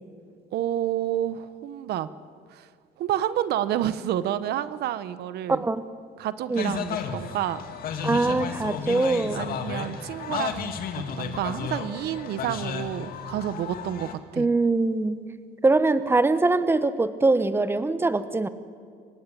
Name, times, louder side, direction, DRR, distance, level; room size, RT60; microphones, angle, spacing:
voice 1, 0.5-2.1 2.5-2.7 3.0-5.6 6.2-7.6 9.3-14.5, right 11 dB, 75° right, 14 dB, 1.0 m, -29 dB
voice 2, 5.5-5.8 6.5-6.7 8.0-9.4 14.4-15.2 15.6-18.5, right 3 dB, 15° right, 12 dB, 1.1 m, -22 dB
sound 1, 6.6-14.1, left 7 dB, 60° left, 2.3 m, -33 dB
27.0 x 16.0 x 9.1 m, 2.2 s
cardioid pair, 110°, 17 cm